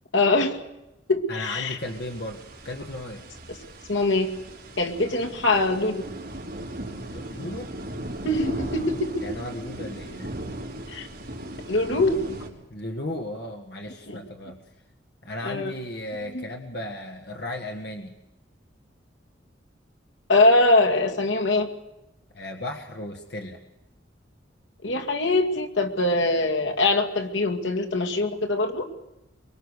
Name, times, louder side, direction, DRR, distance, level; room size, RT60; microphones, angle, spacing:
voice 1, 0.1-0.6 1.1-1.8 3.9-4.3 4.8-6.0 8.2-9.3 10.9-11.1 11.7-12.2 14.1-14.2 15.4-15.7 16.3-16.4 20.3-21.7 24.8-28.9, left 2 dB, 75° left, 3 dB, 2.4 m, -23 dB
voice 2, 1.3-3.2 7.0-7.7 9.2-10.3 12.7-14.6 15.2-18.1 22.3-23.6, left 1 dB, 55° left, 3 dB, 1.7 m, -35 dB
sound 1, 1.8-12.5, right 1 dB, 50° right, 3.7 m, -37 dB
24.0 x 23.5 x 6.7 m, 0.93 s
head